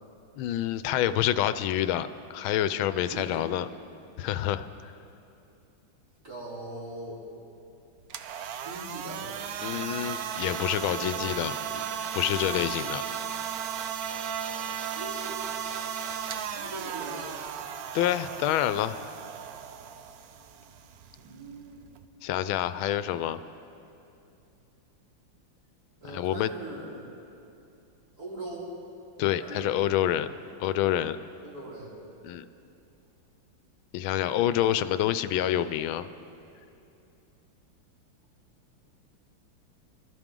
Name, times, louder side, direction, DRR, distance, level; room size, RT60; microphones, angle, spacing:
voice 1, 0.4-3.6 4.2-4.9 9.6-11.8 12.1-13.0 17.9-19.0 22.2-23.4 26.1-26.5 29.2-30.3 30.6-31.2 32.2-32.4 33.9-36.1, left 12 dB, 85° left, 13 dB, 1.4 m, -27 dB
voice 2, 3.1-3.4 6.2-7.2 8.6-9.3 10.6-11.2 14.9-15.4 16.5-17.4 21.2-21.9 26.0-27.0 28.2-28.7 29.4-30.2 31.4-31.9 34.2-34.8, right 2 dB, 45° right, -8 dB, 4.8 m, -41 dB
sound 1, 8.0-22.1, right 8 dB, 65° right, 1.0 m, -35 dB
25.0 x 14.0 x 3.7 m, 2.7 s
omnidirectional pair, 2.2 m